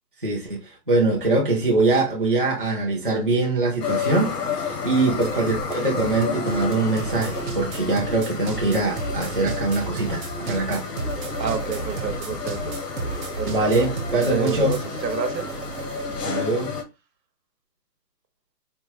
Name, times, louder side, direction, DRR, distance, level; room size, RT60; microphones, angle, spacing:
voice 1, 0.9-4.4 4.8-10.8 13.5-14.8 16.2-16.7, right 2 dB, 35° right, 0.5 m, -23 dB
sound 1, 3.8-16.8, left 5 dB, 70° left, 1.1 m, -31 dB
sound 2, 5.1-16.2, right 3 dB, 55° right, 0.8 m, -33 dB
voice 2, 11.4-12.8 13.4-15.5, right 7 dB, 80° right, 1.1 m, -30 dB
4.3 x 2.1 x 2.7 m
hypercardioid pair, 180°, 49 cm